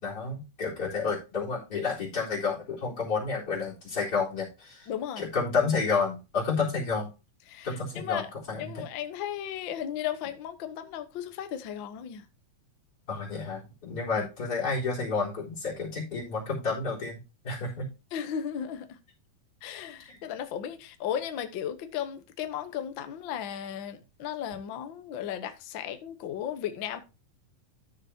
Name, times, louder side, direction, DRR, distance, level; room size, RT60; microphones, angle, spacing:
voice 1, 0.0-4.9 5.2-7.1 7.6-8.2 8.5-8.8 13.1-17.2 17.4-17.9 20.1-20.2, left 4 dB, 25° left, 4.3 m, -30 dB
voice 2, 4.9-5.3 7.5-8.3 8.6-12.3 14.1-14.3 18.1-19.0 19.6-27.0, left 9 dB, 75° left, 1.1 m, -35 dB
13.0 x 6.8 x 2.8 m
omnidirectional pair, 3.8 m